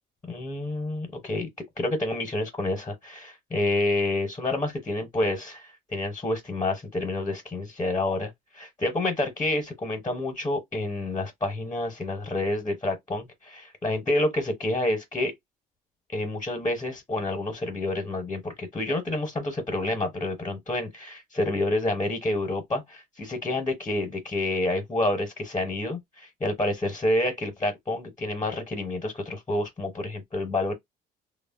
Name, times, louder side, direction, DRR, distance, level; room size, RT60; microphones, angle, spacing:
voice 1, 0.3-1.5 1.8-15.3 16.1-30.7, left 2 dB, 20° left, 0.7 m, -28 dB
3.1 x 2.0 x 2.3 m
cardioid pair, 110°, 17 cm